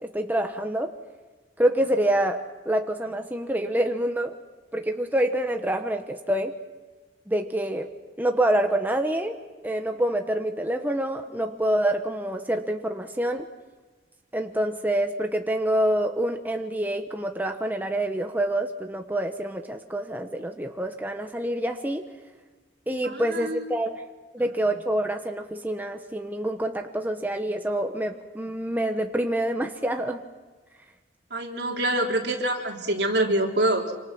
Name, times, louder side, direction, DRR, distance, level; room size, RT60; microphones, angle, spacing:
voice 1, 0.0-0.9 1.6-4.4 4.7-6.5 7.3-7.9 8.2-9.4 9.6-13.5 14.3-22.1 22.9-24.0 24.3-30.2, right 1 dB, 10° right, 4 dB, 1.1 m, -26 dB
voice 2, 23.0-23.6 31.3-33.9, right 1 dB, 65° right, 0 dB, 3.8 m, -25 dB
27.0 x 26.5 x 6.1 m, 1.3 s
head